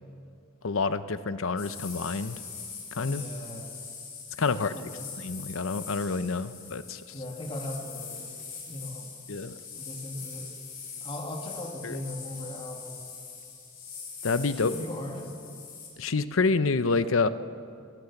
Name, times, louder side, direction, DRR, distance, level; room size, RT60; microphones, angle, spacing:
voice 1, 0.6-2.4 2.9-3.2 4.4-4.7 5.2-7.0 9.3-9.6 11.8-12.0 14.2-14.7 16.0-17.3, left 4 dB, 75° left, 13 dB, 0.7 m, -28 dB
sound 1, 1.6-15.9, left 6 dB, 45° left, 4.8 m, -42 dB
voice 2, 3.0-3.6 4.5-5.1 7.1-8.4 8.7-9.1 9.7-10.5 11.0-13.0 14.5-15.3, left 1 dB, 25° left, 2 dB, 2.0 m, -38 dB
22.5 x 16.5 x 7.1 m, 2.4 s
head